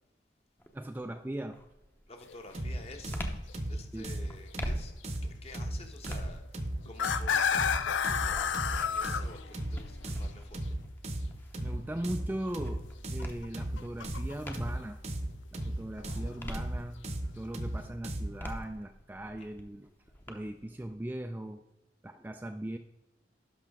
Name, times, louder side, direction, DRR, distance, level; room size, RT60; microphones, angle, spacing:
sound 1, 0.6-1.0 1.5-15.0 15.5-17.3 17.7-20.3, equal, 10° left, 0.7 m, -45 dB
voice 1, 0.7-1.6 3.9-4.1 11.6-12.8 13.1-15.0 15.5-17.0 17.3-19.9 20.3-21.6 22.0-22.8, right 1 dB, 10° right, 6 dB, 0.3 m, -39 dB
voice 2, 2.1-3.2 3.7-4.9 5.4-11.5 20.2-20.3, left 2 dB, 35° left, 5 dB, 1.0 m, -50 dB
sound 2, 2.3-2.4 2.8-3.0 3.5-3.6 5.5-5.6 6.9-10.1 13.2-14.7 16.0-16.3, left 7 dB, 85° left, 0.5 m, -31 dB
sound 3, 2.5-18.4, right 1 dB, 35° right, 0.8 m, -37 dB
11.5 x 5.6 x 3.6 m, 0.95 s
head